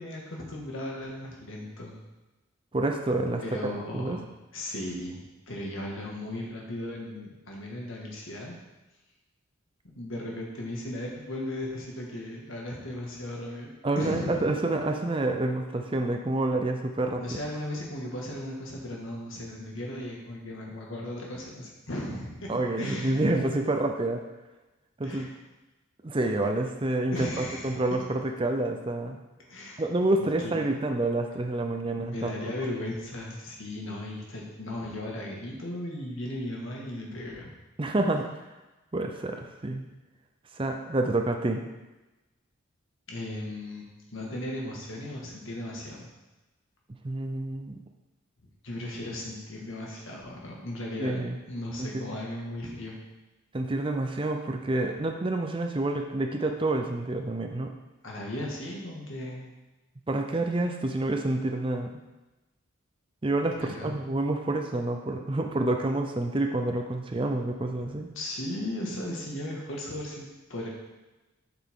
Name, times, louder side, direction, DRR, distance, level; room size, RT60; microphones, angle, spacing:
voice 1, 0.0-2.0 3.4-4.2 4.5-5.2 5.5-8.6 9.9-13.7 14.0-14.4 17.2-22.5 22.8-23.2 25.0-25.3 27.1-27.8 29.5-29.8 30.4-30.5 32.0-37.5 43.1-46.1 48.6-53.0 58.0-59.5 63.6-63.9 68.2-70.7, left 1 dB, 70° left, -2 dB, 1.8 m, -36 dB
voice 2, 2.7-4.2 13.8-17.2 22.5-24.2 25.0-25.3 26.0-29.2 29.8-32.3 37.8-38.3 38.9-39.9 40.6-41.6 47.0-47.8 51.0-51.4 51.8-52.0 53.5-57.7 60.1-62.0 63.2-68.1, right 2 dB, 25° right, 4 dB, 0.5 m, -28 dB
8.1 x 5.9 x 3.7 m, 1.1 s
head